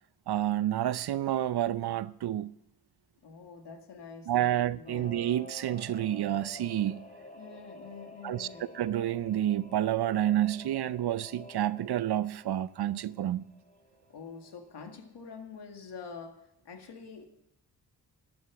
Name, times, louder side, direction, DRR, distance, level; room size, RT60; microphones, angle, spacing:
voice 1, 0.3-2.5 4.3-7.0 8.2-8.5 8.7-13.4, right 12 dB, 65° right, 0.6 m, -29 dB
voice 2, 3.2-5.1 7.3-8.7 14.1-17.2, left 5 dB, 70° left, 2.1 m, -46 dB
Singing / Musical instrument, 4.8-14.9 15.2-15.3, left 1 dB, 20° left, 2.3 m, -50 dB
13.0 x 11.5 x 5.9 m
cardioid pair, 70°, 42 cm